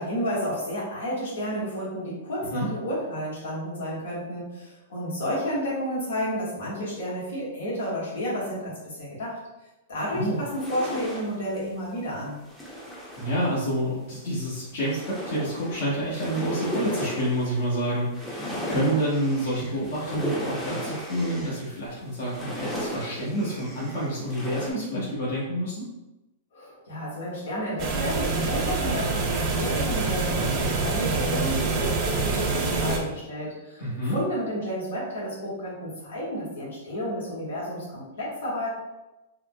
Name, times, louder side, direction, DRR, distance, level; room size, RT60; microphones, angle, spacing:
voice 1, 0.0-9.4 9.9-12.4 26.5-33.8 34.1-38.7, equal, 85° left, -6 dB, 1.3 m, -31 dB
sound 1, 10.4-11.6 12.1-13.4 13.7-13.8 14.3-14.4 14.6-17.8 18.1-21.7 22.2-24.7, equal, 5° left, 0.6 m, -35 dB
voice 2, 13.2-15.0 15.3-25.8 33.8-34.1, equal, 70° left, -8 dB, 1.1 m, -28 dB
sound 2, 27.8-33.0, right 3 dB, 35° right, 0.5 m, -26 dB
3.6 x 2.2 x 2.2 m, 1.0 s
hypercardioid pair, 140°, 0 cm